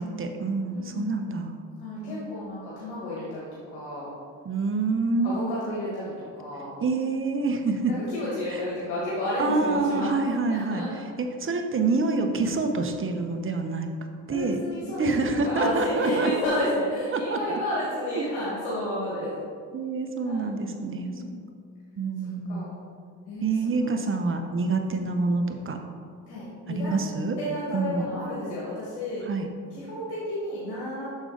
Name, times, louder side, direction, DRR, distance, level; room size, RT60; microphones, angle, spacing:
voice 1, 0.0-1.5 2.1-2.3 4.4-5.4 6.8-7.9 8.5-8.6 9.4-10.8 11.2-13.9 14.3-14.6 15.0-16.3 17.1-17.6 18.2-18.3 19.7-21.1 22.0-22.7 23.4-25.8 26.7-27.4 27.7-28.1 29.3-29.5, right 3 dB, 35° right, 5 dB, 0.8 m, -27 dB
voice 2, 0.7-1.1 1.8-3.5 3.7-4.1 5.2-6.1 6.4-6.7 7.9-11.0 14.3-19.3 20.1-20.5 20.8-21.3 22.5-22.7 23.3-23.8 24.1-24.2 24.9-25.0 26.3-26.9 27.4-29.2 29.7-31.2, left 1 dB, 85° left, -7 dB, 1.5 m, -31 dB
6.4 x 5.2 x 3.8 m, 2.1 s
supercardioid pair, 65°, 37 cm